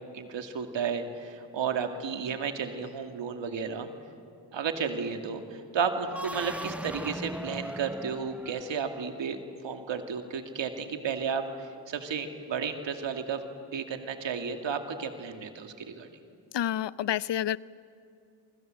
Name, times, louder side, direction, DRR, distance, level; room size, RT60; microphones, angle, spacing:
voice 1, 0.1-3.9 4.5-9.4 9.6-13.4 13.7-16.1, right 6 dB, 85° right, 6 dB, 2.5 m, -33 dB
sound 1, 6.0-9.0, right 1 dB, 5° right, 0.7 m, -39 dB
voice 2, 16.5-17.6, left 11 dB, 70° left, 19 dB, 0.7 m, -28 dB
27.0 x 25.5 x 7.9 m, 2.4 s
cardioid pair, 55°, 44 cm